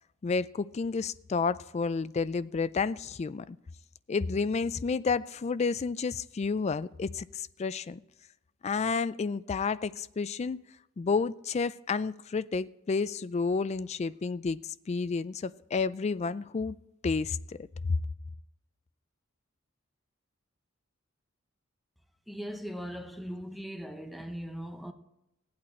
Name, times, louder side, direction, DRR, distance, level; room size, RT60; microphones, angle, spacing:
voice 1, 0.2-3.6 4.1-8.0 8.6-10.6 11.0-16.8 17.0-17.4, left 4 dB, 30° left, 0.3 m, -30 dB
voice 2, 22.3-24.9, equal, ahead, 0.8 m, -39 dB
17.5 x 8.7 x 4.3 m
head